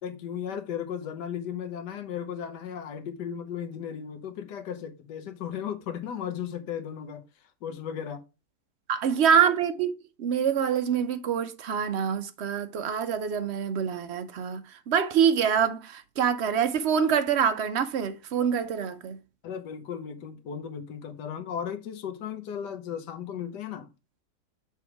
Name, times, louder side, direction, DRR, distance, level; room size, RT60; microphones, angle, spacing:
voice 1, 0.0-8.2 19.4-23.9, left 8 dB, 85° left, 1.5 m, -36 dB
voice 2, 8.9-9.9 10.2-19.2, right 7 dB, 65° right, 0.7 m, -25 dB
7.0 x 3.6 x 4.7 m
omnidirectional pair, 1.8 m